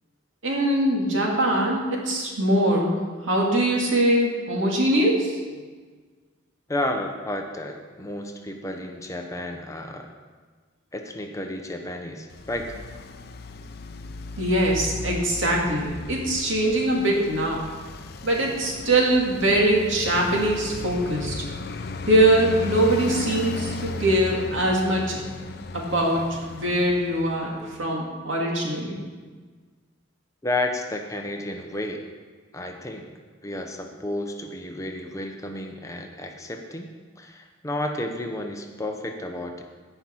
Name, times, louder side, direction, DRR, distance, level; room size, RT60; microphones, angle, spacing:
voice 1, 0.4-3.0 3.3-5.4 14.4-17.6 18.2-21.4 22.1-25.2 25.7-26.3 26.5-29.0, right 1 dB, 85° right, -2 dB, 2.2 m, -22 dB
voice 2, 6.7-10.1 10.9-12.7 30.4-32.0 32.5-33.1 33.4-36.9 37.2-39.6, left 1 dB, 15° left, 4 dB, 0.8 m, -31 dB
Traffic noise roadway noise, 12.3-27.8, left 3 dB, 55° left, 0.5 m, -36 dB
16.0 x 5.7 x 4.4 m, 1.4 s
head